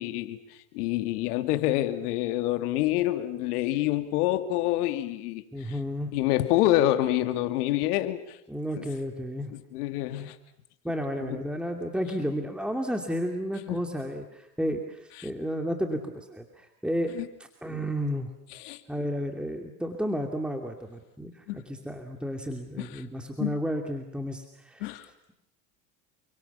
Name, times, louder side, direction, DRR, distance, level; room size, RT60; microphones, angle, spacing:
voice 1, 0.0-5.8 6.1-8.4 8.8-8.9 9.5-10.4 11.2-11.4 13.7-13.8 15.2-15.3 17.1-17.3 18.5-18.8 21.5-21.6 22.8-23.0 23.4-23.6 24.8-25.1, left 14 dB, 75° left, 8 dB, 2.7 m, -27 dB
voice 2, 5.5-6.1 8.5-9.5 10.8-17.1 17.6-18.3 18.9-24.9, equal, ahead, 3 dB, 2.7 m, -32 dB
30.0 x 24.0 x 7.1 m, 0.79 s
supercardioid pair, 105°, 46 cm